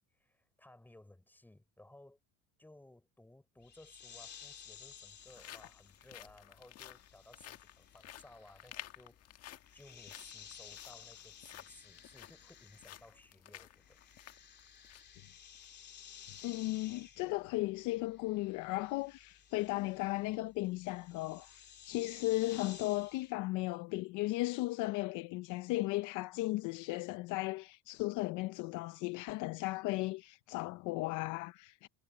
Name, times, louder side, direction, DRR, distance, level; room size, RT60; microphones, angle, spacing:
voice 1, 0.0-2.2 2.6-14.0, left 1 dB, 5° left, 5.9 m, -59 dB
sound 1, 3.6-3.7 4.6-15.2 15.6-15.7 16.2-16.4, left 13 dB, 45° left, 1.6 m, -54 dB
sound 2, 3.6-13.4 13.6-23.3, left 8 dB, 30° left, 3.3 m, -56 dB
voice 2, 16.4-31.9, left 20 dB, 60° left, 0.7 m, -36 dB
cardioid pair, 135°, 34 cm